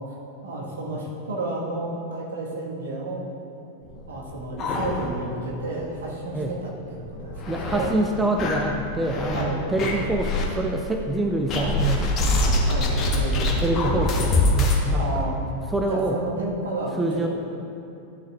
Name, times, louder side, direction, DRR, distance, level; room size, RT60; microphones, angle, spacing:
voice 1, 0.4-3.2 4.1-7.9 9.3-9.6 11.5-11.7 12.6-13.4 14.9-15.4 15.9-17.3, right 2 dB, 65° right, -3 dB, 1.4 m, -31 dB
sound 1, 3.9-5.4 5.8-5.9 6.2-6.3 6.9-7.9 8.4-9.4 9.8-10.5 11.5-14.8, left 1 dB, 30° left, 1.0 m, -24 dB
voice 2, 7.5-12.0 13.6-15.3 15.7-16.2 17.0-17.3, right 2 dB, 10° right, 2 dB, 0.4 m, -26 dB
11.5 x 6.2 x 2.4 m, 2.7 s
figure-of-eight pair, 90°, 0 cm